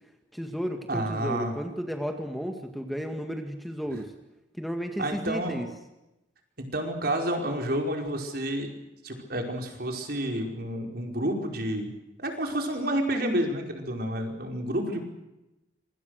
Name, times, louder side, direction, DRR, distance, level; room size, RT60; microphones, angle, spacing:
voice 1, 0.3-4.1 4.6-5.7, equal, ahead, 4 dB, 2.0 m, -33 dB
voice 2, 0.9-1.6 5.0-5.6 6.6-8.7 9.0-11.9 12.2-15.1, right 1 dB, 55° right, 2 dB, 5.1 m, -30 dB
27.0 x 25.0 x 6.5 m, 0.96 s
head